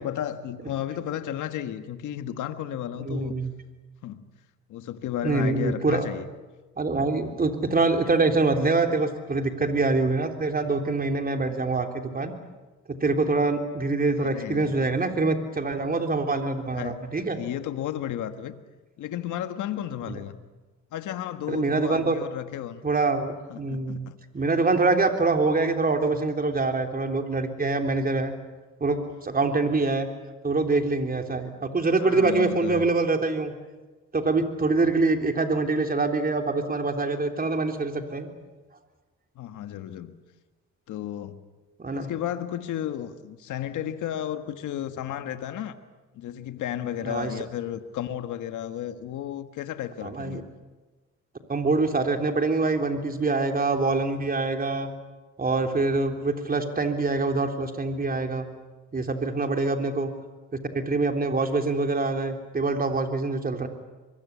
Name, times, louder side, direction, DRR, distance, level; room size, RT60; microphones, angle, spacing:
voice 1, 0.0-3.3 4.0-4.2 4.7-6.3 14.2-14.7 16.7-17.0 17.3-18.6 19.0-20.3 20.9-22.8 23.5-24.2 32.0-32.8 39.3-40.2 40.9-41.4 42.0-45.7 46.1-50.4, left 11 dB, 80° left, 9 dB, 1.6 m, -33 dB
voice 2, 3.1-3.5 5.2-6.1 6.8-12.3 13.0-17.4 20.1-20.2 21.5-22.2 22.8-24.0 24.3-28.3 28.8-30.1 30.4-33.5 34.1-38.3 41.8-42.1 47.0-47.3 50.0-50.4 51.5-54.9 55.4-58.5 58.9-60.1 60.7-63.7, right 3 dB, 30° right, 4 dB, 3.6 m, -25 dB
24.5 x 22.5 x 8.4 m, 1.2 s
cardioid pair, 90°, 30 cm